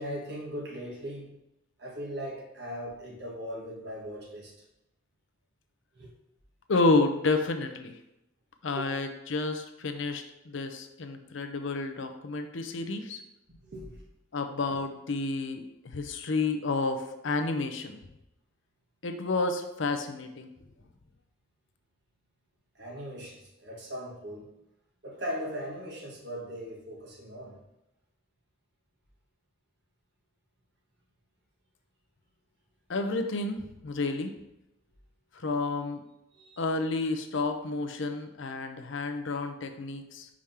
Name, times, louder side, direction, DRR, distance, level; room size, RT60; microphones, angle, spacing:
voice 1, 0.0-1.4 1.8-4.5 5.9-6.1 8.7-9.1 13.5-14.0 22.7-24.5 25.0-27.6 36.3-36.6, equal, 50° right, -1 dB, 1.2 m, -39 dB
voice 2, 6.7-7.9 8.6-13.2 14.3-18.0 19.0-20.5 32.9-34.3 35.4-36.0 36.6-40.3, left 3 dB, 70° left, 6 dB, 0.6 m, -30 dB
4.9 x 3.6 x 5.6 m, 0.91 s
head